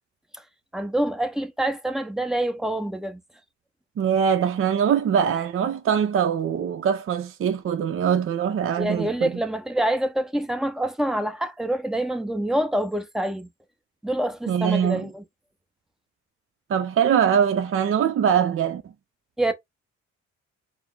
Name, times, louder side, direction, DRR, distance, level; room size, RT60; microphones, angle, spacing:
voice 1, 0.7-3.2 8.8-13.5 14.0-15.2 19.4-19.5, right 1 dB, ahead, 0.8 m, -26 dB
voice 2, 4.0-9.3 14.5-15.0 16.7-18.8, right 8 dB, 45° right, 0.6 m, -22 dB
4.7 x 2.0 x 3.6 m
cardioid pair, 90°, 30 cm